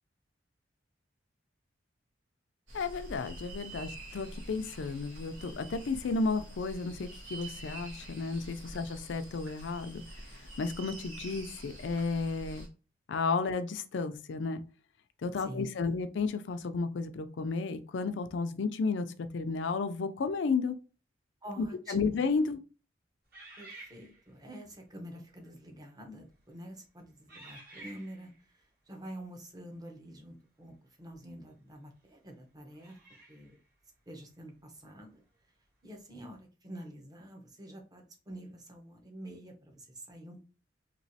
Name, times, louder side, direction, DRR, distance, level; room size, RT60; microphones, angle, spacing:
voice 1, 2.7-10.0 10.3-12.7 13.1-14.6 15.2-19.1 19.3-20.8 21.9-22.6, left 4 dB, 65° left, 9 dB, 0.4 m, -33 dB
sound 1, 2.7-12.7, right 1 dB, 80° right, 1.3 m, -46 dB
voice 2, 15.4-15.9 21.4-22.2 23.6-33.0 33.3-33.6 34.1-35.2 35.8-40.4, equal, 20° right, 2 dB, 0.7 m, -47 dB
sound 2, 23.3-24.5 25.3-25.5 26.2-26.5 27.3-28.4 31.1-31.2 32.7-33.6, right 2 dB, 50° right, 1.5 m, -51 dB
3.1 x 2.9 x 2.7 m, 0.34 s
head